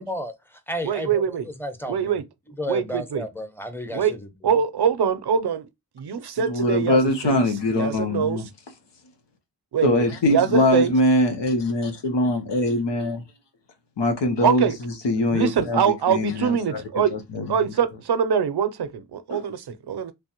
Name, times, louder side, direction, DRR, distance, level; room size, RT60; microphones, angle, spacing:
voice 1, 0.0-2.2 2.6-4.3, equal, 5° left, 0.8 m, -32 dB
voice 2, 0.8-1.5 1.9-2.2 2.7-3.2 3.9-4.1 4.4-5.7 6.0-7.4 7.7-8.4 9.7-10.9 14.4-14.8 15.3-17.1 17.5-20.1, right 7 dB, 65° right, 0.6 m, -23 dB
voice 3, 6.4-8.5 9.8-13.2 14.0-16.8 17.1-17.7 19.3-19.4, left 1 dB, 85° left, 0.8 m, -23 dB
3.3 x 2.0 x 2.8 m
cardioid pair, 40°, 42 cm